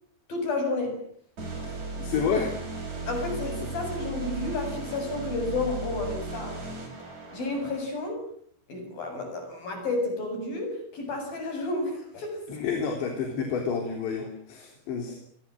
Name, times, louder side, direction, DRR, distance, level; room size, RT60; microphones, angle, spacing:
voice 1, 0.3-1.0 3.1-6.6 7.3-8.2 8.7-12.4, left 2 dB, 50° left, 5 dB, 9.4 m, -31 dB
sound 1, 1.4-7.9, right 3 dB, 40° right, 8.0 m, -36 dB
voice 2, 2.0-2.6 12.5-15.2, left 6 dB, 70° left, 3 dB, 5.7 m, -29 dB
30.0 x 24.0 x 7.7 m, 0.62 s
omnidirectional pair, 5.3 m